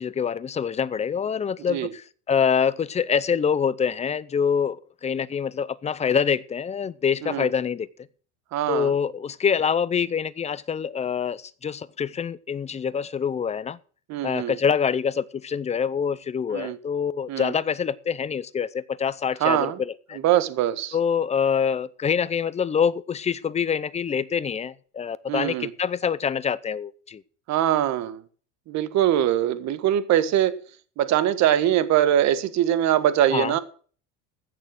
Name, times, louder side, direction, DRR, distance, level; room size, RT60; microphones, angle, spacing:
voice 1, 0.0-7.9 8.7-13.8 14.2-20.2 20.9-27.2 33.3-33.5, left 7 dB, 20° left, 0.6 m, -25 dB
voice 2, 8.5-8.9 14.1-14.5 16.5-16.8 17.3-17.5 19.4-19.8 20.2-20.9 25.3-25.7 27.5-28.2 28.7-30.6 31.0-33.6, right 11 dB, 50° right, 1.5 m, -22 dB
15.0 x 6.7 x 7.6 m
supercardioid pair, 130°, 36 cm